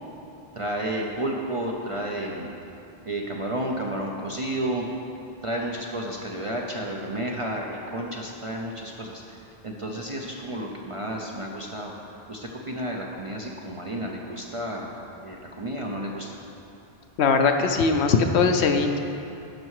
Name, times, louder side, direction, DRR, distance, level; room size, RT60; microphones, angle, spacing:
voice 1, 0.5-2.5 3.1-4.9 5.4-9.4 9.6-11.9 12.3-14.9 15.2-16.4, right 1 dB, 35° right, -1 dB, 0.6 m, -31 dB
voice 2, 17.2-19.0, left 4 dB, 70° left, 6 dB, 0.9 m, -20 dB
11.5 x 5.5 x 4.8 m, 2.7 s
omnidirectional pair, 1.2 m